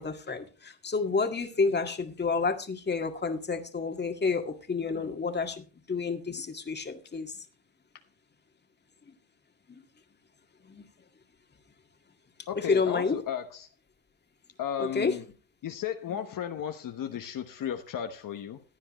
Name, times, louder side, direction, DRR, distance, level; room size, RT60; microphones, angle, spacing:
voice 1, 0.0-7.3 9.7-9.8 10.7-10.9 12.6-13.2 14.8-15.1 16.1-16.2, left 4 dB, 30° left, 6 dB, 1.9 m, -30 dB
voice 2, 12.5-13.7 14.6-15.2 15.6-18.6, left 9 dB, 60° left, 6 dB, 1.1 m, -34 dB
15.5 x 9.8 x 3.1 m, 0.35 s
cardioid pair, 90°, 37 cm